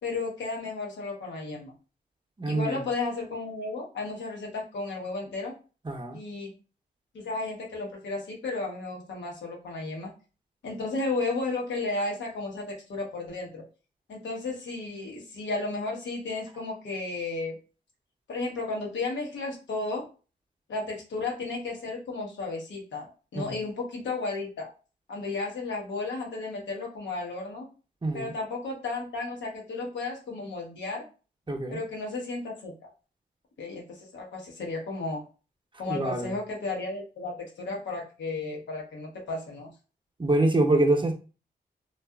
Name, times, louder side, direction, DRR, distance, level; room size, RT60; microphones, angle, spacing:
voice 1, 0.0-1.7 2.4-5.5 6.1-6.5 7.1-10.1 10.6-13.6 14.1-17.6 18.3-20.1 20.7-24.7 25.1-27.7 28.1-31.0 31.7-32.7 33.6-35.2 35.8-39.7, left 3 dB, 85° left, 0.9 m, -33 dB
voice 2, 2.4-2.8 5.9-6.2 23.4-23.6 28.0-28.3 31.5-31.8 35.9-36.3 40.2-41.2, right 2 dB, 25° right, 0.7 m, -25 dB
2.7 x 2.3 x 2.3 m
supercardioid pair, 40°, 18 cm